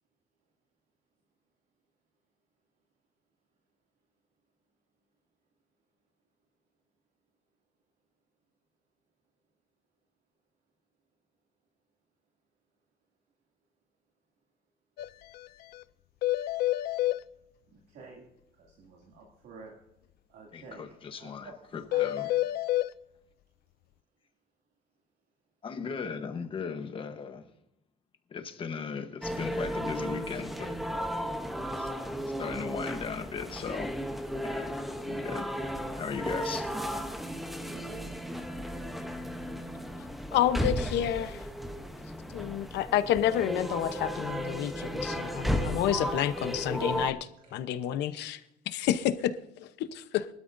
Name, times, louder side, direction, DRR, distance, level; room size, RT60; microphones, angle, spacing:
sound 1, 15.0-15.1 15.3-15.5 15.7-15.8 16.2-17.2 21.9-22.9, left 16 dB, 65° left, 0.4 m, -28 dB
voice 1, 17.7-18.3 18.5-19.8 20.3-22.4 30.1-30.2 47.4-47.6, right 3 dB, 70° right, 2.5 m, -51 dB
voice 2, 20.5-22.2 25.6-27.5 28.3-30.8 31.6-31.9 32.4-33.9 34.4-35.6 36.0-36.7, left 6 dB, 30° left, 1.1 m, -37 dB
sound 2, 29.2-47.1, equal, ahead, 0.8 m, -34 dB
voice 3, 40.3-41.5 42.3-47.2 47.5-48.4 48.7-49.3 49.6-50.3, left 11 dB, 80° left, 0.9 m, -29 dB
24.0 x 12.5 x 2.6 m
cardioid pair, 175°, 17 cm